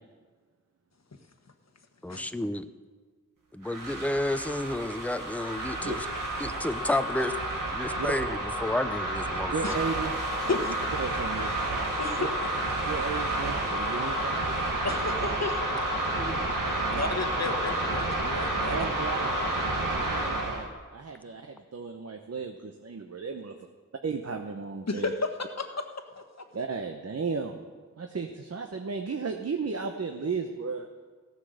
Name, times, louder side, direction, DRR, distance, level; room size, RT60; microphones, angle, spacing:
voice 1, 2.0-2.6 3.5-6.1 6.4-7.3 7.7-9.8 16.1-16.5, left 1 dB, 5° left, 10 dB, 0.7 m, -31 dB
sound 1, 3.6-20.7, right 1 dB, 80° right, 1.9 m, -30 dB
voice 2, 9.5-11.5 12.2-12.3 12.9-14.6 18.7-19.3 19.8-23.5 24.0-25.1 26.5-27.6 28.0-30.9, right 4 dB, 50° right, 4 dB, 0.9 m, -34 dB
voice 3, 12.0-12.3 14.8-15.5 16.9-18.9 24.9-25.8 26.2-26.5, left 3 dB, 55° left, 6 dB, 1.3 m, -32 dB
15.0 x 8.2 x 6.5 m, 1.5 s
wide cardioid pair, 45°, 32 cm